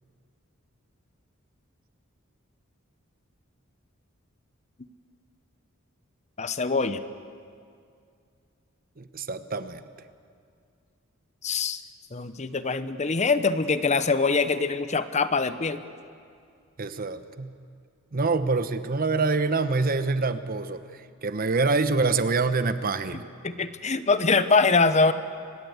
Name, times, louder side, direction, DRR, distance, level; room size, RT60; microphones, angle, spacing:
voice 1, 6.4-7.0 11.4-11.8 12.1-15.8 23.4-25.1, left 4 dB, 35° left, 12 dB, 0.8 m, -23 dB
voice 2, 9.0-9.8 16.8-17.6 18.1-23.2, right 3 dB, 45° right, 11 dB, 1.0 m, -26 dB
25.5 x 20.0 x 8.1 m, 2.3 s
head